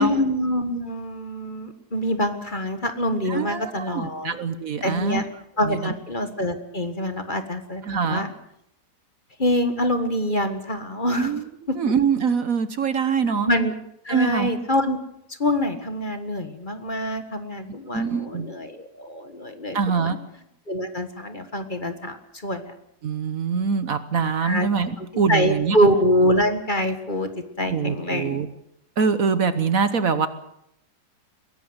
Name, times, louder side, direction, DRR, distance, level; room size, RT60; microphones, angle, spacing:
voice 1, 0.0-4.4 4.8-5.2 5.6-8.3 9.4-11.4 11.7-11.8 13.4-13.7 14.0-15.0 15.4-20.2 20.7-22.7 24.4-24.7 25.0-27.3 27.6-28.4, equal, 30° left, 8 dB, 1.7 m, -25 dB
voice 2, 3.3-5.2 5.7-5.9 7.9-8.2 11.2-11.4 11.8-13.5 14.1-14.5 17.9-18.5 19.7-20.2 23.0-25.8 27.6-28.5 29.0-30.3, right 6 dB, 55° right, 12 dB, 1.4 m, -24 dB
22.0 x 17.5 x 8.0 m, 0.77 s
omnidirectional pair, 1.8 m